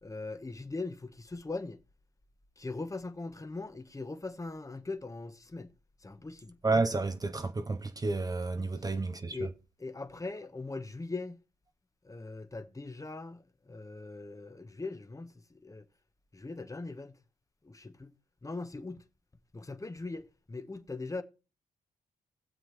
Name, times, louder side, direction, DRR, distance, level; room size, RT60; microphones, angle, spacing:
voice 1, 0.0-1.8 2.6-5.7 6.0-6.6 8.8-8.9 9.3-9.5 9.8-11.4 12.0-15.9 16.3-17.1 17.6-18.1 18.4-19.0 19.5-21.2, left 3 dB, 25° left, 1.2 m, -40 dB
voice 2, 6.6-9.4, right 3 dB, 25° right, 0.7 m, -30 dB
19.5 x 7.2 x 3.1 m
cardioid pair, 60°, 14 cm